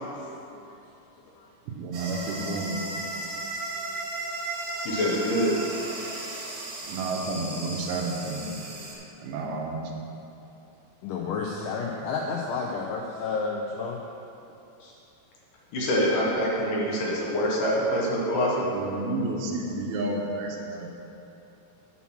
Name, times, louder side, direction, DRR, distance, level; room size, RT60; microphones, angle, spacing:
voice 1, 0.4-0.8 1.4-1.5 6.6-6.9 11.0-14.0 14.8-14.9, left 4 dB, 85° left, 0 dB, 1.9 m, -31 dB
voice 2, 1.7-2.8 6.9-8.6 9.2-9.9 18.5-20.9, right 2 dB, 85° right, 1 dB, 2.7 m, -31 dB
sound 1, 1.9-9.0, right 2 dB, 65° right, 2.5 m, -35 dB
voice 3, 4.8-5.5 15.7-18.6, equal, 65° left, -4 dB, 2.4 m, -25 dB
8.4 x 5.8 x 6.0 m, 2.8 s
omnidirectional pair, 4.4 m